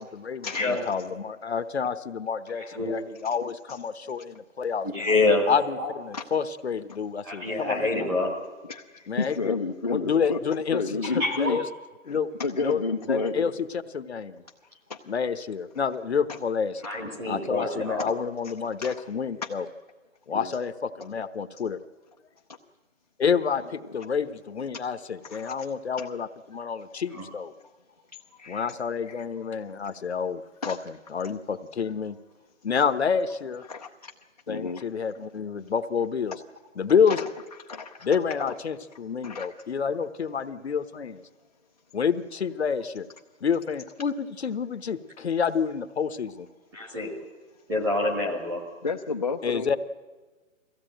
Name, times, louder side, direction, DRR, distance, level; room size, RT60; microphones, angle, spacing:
voice 1, 0.0-5.1 5.5-8.1 9.1-9.5 9.9-11.7 12.1-12.3 12.6-12.8 13.1-14.4 15.1-16.8 17.3-19.7 20.3-21.8 23.2-27.5 28.5-30.8 31.1-32.2 32.6-33.6 34.5-36.4 36.8-37.2 38.0-41.2 41.9-43.1 43.4-46.5 49.4-49.8, left 6 dB, 50° left, 11 dB, 1.0 m, -28 dB
voice 2, 2.6-2.9 4.9-5.5 5.8-5.9 7.2-8.3 11.2-11.5 16.8-18.1 27.1-27.2 46.7-47.1 47.7-48.6, left 2 dB, 5° right, -2 dB, 1.3 m, -26 dB
voice 3, 8.6-10.4 10.7-11.6 12.1-13.5 14.9-15.0 16.3-16.4 18.0-18.1 18.8-18.9 19.4-19.5 20.3-20.6 23.6-23.7 25.3-25.5 26.0-26.1 28.4-28.7 29.1-29.2 30.6-30.8 33.7-34.1 34.5-34.8 37.1-37.3 37.7-38.1 38.5-38.6 39.2-39.5 48.8-49.8, left 4 dB, 30° left, 2 dB, 0.6 m, -31 dB
22.5 x 16.0 x 9.0 m, 1.3 s
hypercardioid pair, 170°, 40 cm